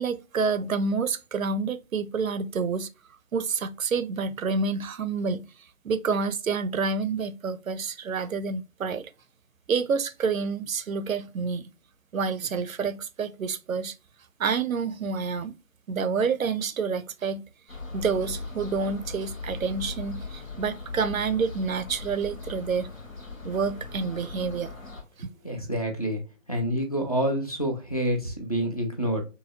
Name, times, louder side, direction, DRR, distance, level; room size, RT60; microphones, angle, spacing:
voice 1, 0.0-2.9 3.3-5.5 5.8-9.1 9.7-11.6 12.1-13.9 14.4-15.5 15.9-17.4 17.9-22.9 23.4-24.7 25.2-25.3, right 5 dB, 85° right, 0.5 m, -28 dB
sound 1, 17.7-25.0, left 3 dB, 85° left, 1.3 m, -39 dB
voice 2, 25.4-26.2 26.5-29.2, equal, 30° left, 0.4 m, -27 dB
3.1 x 2.7 x 2.4 m
figure-of-eight pair, 150°, 40 cm